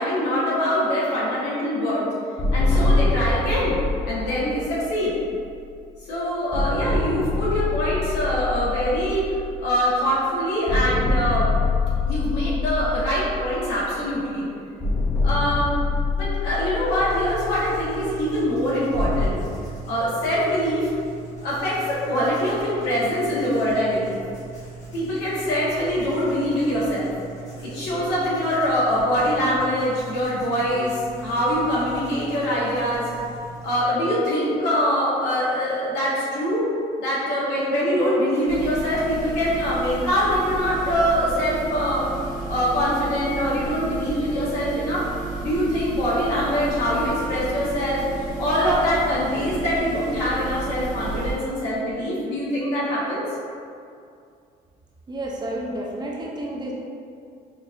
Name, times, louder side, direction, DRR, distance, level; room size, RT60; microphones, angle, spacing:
voice 1, 0.0-2.0 2.5-3.8 4.1-5.1 6.1-11.5 12.1-14.4 15.2-15.7 16.1-19.4 19.8-20.9 21.4-24.2 24.9-27.1 27.6-33.1 33.6-36.7 37.0-42.0 42.5-45.0 45.4-48.0 48.4-53.3, equal, 90° left, -8 dB, 1.4 m, -23 dB
sound 1, 2.4-6.0 6.5-10.3 10.7-14.3 14.8-19.3, left 3 dB, 15° left, 0.5 m, -25 dB
Writing, 16.9-33.9, right 4 dB, 45° left, 1.3 m, -40 dB
sound 2, 38.5-51.3, right 3 dB, 85° right, 1.0 m, -32 dB
voice 2, 55.1-56.7, right 1 dB, 25° right, -2 dB, 0.6 m, -30 dB
5.8 x 2.5 x 2.6 m, 2.4 s
cardioid pair, 110°, 17 cm